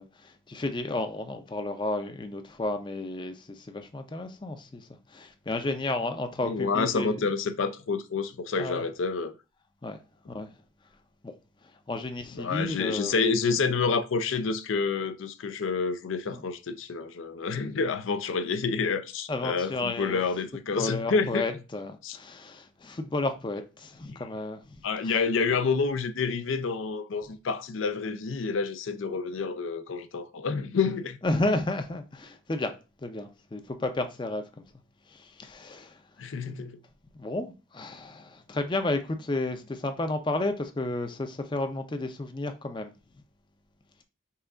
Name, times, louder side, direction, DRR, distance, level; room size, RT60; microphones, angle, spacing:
voice 1, 0.0-7.2 8.6-8.8 9.8-10.0 10.3-10.5 11.2-11.3 11.9-13.2 16.3-16.4 19.3-20.2 20.8-24.6 25.0-25.2 31.2-32.7 33.0-34.4 35.1-36.0 37.2-42.9, left 2 dB, 25° left, 0.4 m, -32 dB
voice 2, 6.4-9.4 12.3-21.4 22.0-22.2 24.8-31.2 36.2-36.8, left 4 dB, 85° left, 0.5 m, -28 dB
5.6 x 2.4 x 3.7 m
head